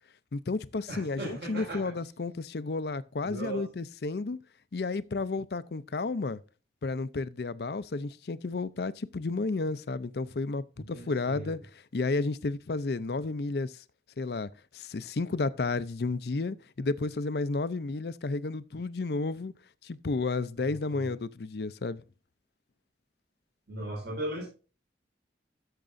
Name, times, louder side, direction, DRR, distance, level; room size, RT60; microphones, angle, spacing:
voice 1, 0.3-4.4 4.7-6.4 6.8-11.6 11.9-13.8 14.2-19.5 19.8-22.0, left 3 dB, 60° left, 0.5 m, -32 dB
voice 2, 0.9-1.9 3.2-3.6 10.8-11.5 20.6-21.1 23.7-24.5, right 1 dB, 65° right, 5.1 m, -38 dB
13.5 x 6.6 x 2.6 m
head